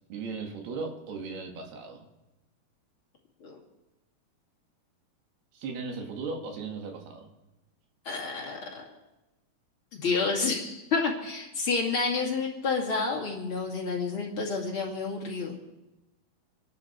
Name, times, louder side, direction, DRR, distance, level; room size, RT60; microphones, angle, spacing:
voice 1, 0.1-2.1 5.5-7.3, right 4 dB, 70° right, 3 dB, 4.0 m, -37 dB
voice 2, 8.0-8.8 9.9-15.5, left 4 dB, 35° left, -1 dB, 2.7 m, -29 dB
28.0 x 11.5 x 4.5 m, 0.99 s
omnidirectional pair, 4.8 m